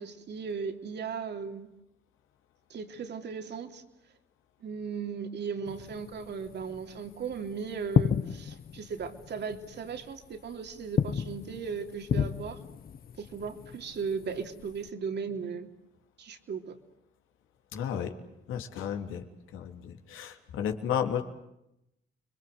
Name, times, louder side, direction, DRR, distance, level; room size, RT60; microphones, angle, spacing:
voice 1, 0.0-1.7 2.7-3.8 4.6-12.6 13.2-15.7 16.2-16.8, right 6 dB, 60° right, 6 dB, 3.4 m, -37 dB
sound 1, 5.7-14.9, left 7 dB, 45° left, 1.0 m, -34 dB
voice 2, 17.7-18.2 18.5-19.2 19.5-21.2, left 8 dB, 90° left, 5 dB, 3.3 m, -33 dB
30.0 x 23.0 x 8.0 m, 0.84 s
cardioid pair, 90°, 20 cm